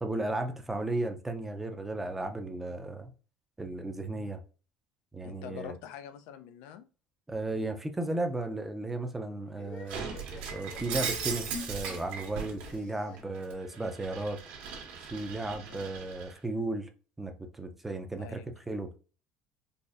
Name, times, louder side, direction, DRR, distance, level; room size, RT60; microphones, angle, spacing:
voice 1, 0.0-3.1 3.6-4.4 5.1-5.7 7.3-10.1 10.5-14.4 15.0-16.9 17.2-18.4 18.7-19.0, right 2 dB, 10° right, 0.4 m, -35 dB
voice 2, 5.2-6.9 12.8-13.0 15.7-15.9 18.2-18.5, left 9 dB, 85° left, 0.4 m, -45 dB
sound 1, 9.5-14.2, left 3 dB, 35° left, 0.6 m, -50 dB
Shatter, 9.9-12.7 13.2-16.3, right 5 dB, 80° right, 1.1 m, -38 dB
3.9 x 2.5 x 2.4 m
cardioid pair, 165°, 3 cm